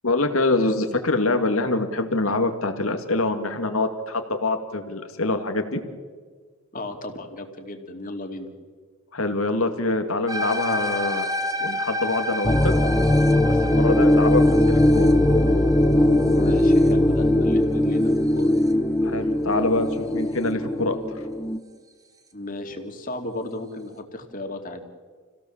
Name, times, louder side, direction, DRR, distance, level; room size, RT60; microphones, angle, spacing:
voice 1, 0.0-5.8 9.1-12.7 13.5-15.1 19.0-21.0, left 2 dB, 80° left, 7 dB, 2.4 m, -25 dB
voice 2, 6.7-8.5 16.3-18.5 22.3-24.8, left 1 dB, 40° left, 5 dB, 2.6 m, -34 dB
sound 1, 10.3-18.7, left 1 dB, 15° right, 1.3 m, -31 dB
sound 2, 12.4-21.6, left 1 dB, 10° left, 0.9 m, -19 dB
28.5 x 17.0 x 7.4 m, 1.5 s
head